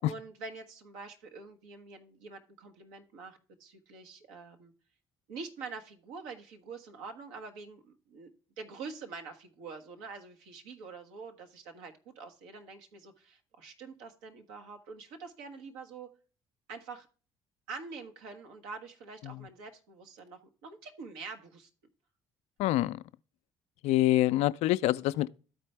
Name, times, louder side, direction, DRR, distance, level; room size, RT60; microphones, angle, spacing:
voice 1, 0.0-4.7 5.3-8.3 8.6-16.1 16.7-17.1 17.7-21.7, right 4 dB, 80° right, 1.1 m, -45 dB
voice 2, 22.6-23.0 23.8-25.3, left 15 dB, 65° left, 0.4 m, -26 dB
13.0 x 4.4 x 3.3 m
hypercardioid pair, 55°, 12 cm